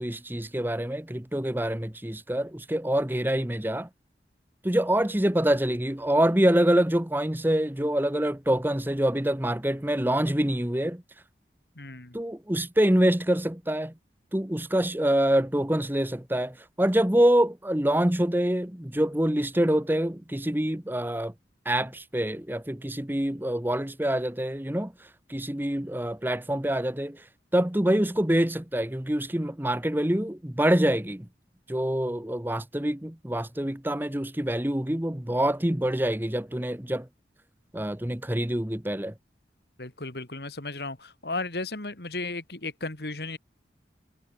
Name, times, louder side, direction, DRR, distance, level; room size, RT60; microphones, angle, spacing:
voice 1, 0.0-3.9 4.6-11.0 12.1-13.9 14.3-21.3 21.6-24.9 25.3-27.2 27.5-31.3 31.7-37.1 37.7-39.1, right 1 dB, 10° right, 1.1 m, -25 dB
voice 2, 11.8-12.2 39.8-43.4, left 3 dB, 65° left, 2.5 m, -35 dB
head